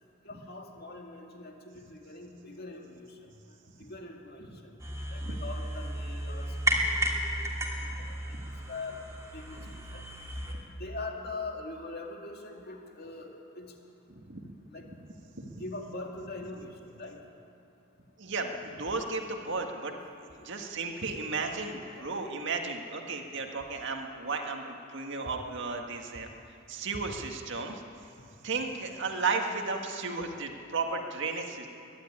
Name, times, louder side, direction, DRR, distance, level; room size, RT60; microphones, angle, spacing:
voice 1, 0.2-3.3 3.8-4.8 5.1-8.4 8.7-9.0 9.3-10.1 10.5-13.7 14.7-14.9 15.6-17.2 19.9-20.0 20.3-20.5 21.8-22.4 23.3-23.8 24.3-24.4, left 3 dB, 50° left, 1 dB, 2.2 m, -43 dB
sound 1, 4.8-10.5, right 1 dB, 15° right, 2.6 m, -33 dB
voice 2, 14.2-14.5 15.4-15.6 18.2-19.9 20.2-26.3 26.7-27.8 28.4-31.7, right 4 dB, 60° right, 3 dB, 1.9 m, -34 dB
22.0 x 12.5 x 9.9 m, 2.6 s
head